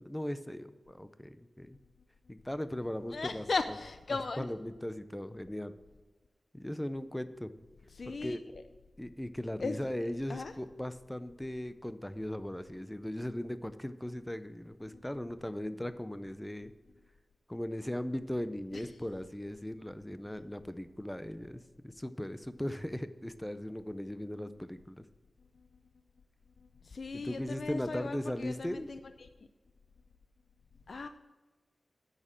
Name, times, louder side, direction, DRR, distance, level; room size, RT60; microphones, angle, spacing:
voice 1, 0.0-1.8 2.3-3.5 4.1-5.7 6.5-7.5 8.1-8.4 9.0-16.7 17.5-25.0 27.1-28.9, left 1 dB, 10° left, 12 dB, 0.5 m, -38 dB
voice 2, 3.1-4.5 7.9-8.4 9.6-9.8 10.3-10.5 18.7-18.8 26.8-29.0 30.9-31.1, left 4 dB, 60° left, 9 dB, 0.4 m, -37 dB
8.7 x 6.6 x 7.3 m, 1.3 s
wide cardioid pair, 120°, 0 cm